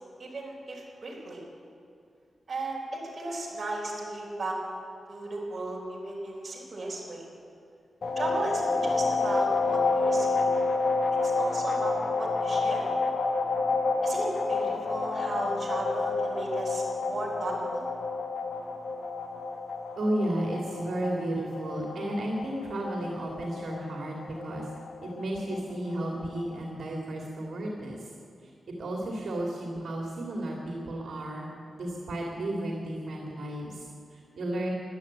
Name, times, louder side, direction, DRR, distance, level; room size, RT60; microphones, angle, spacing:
voice 1, 0.2-1.4 2.5-4.6 5.1-7.2 8.2-10.4 11.2-12.9 14.0-16.8 17.1-17.9, right 2 dB, 35° right, -3 dB, 4.3 m, -35 dB
sound 1, 8.0-26.6, left 3 dB, 55° left, 1.1 m, -30 dB
voice 2, 20.0-24.7 25.0-28.1 28.4-28.5 28.8-31.5 31.8-34.7, right 1 dB, 65° right, -1 dB, 2.3 m, -33 dB
15.0 x 11.0 x 8.7 m, 2.5 s
wide cardioid pair, 130°, 0 cm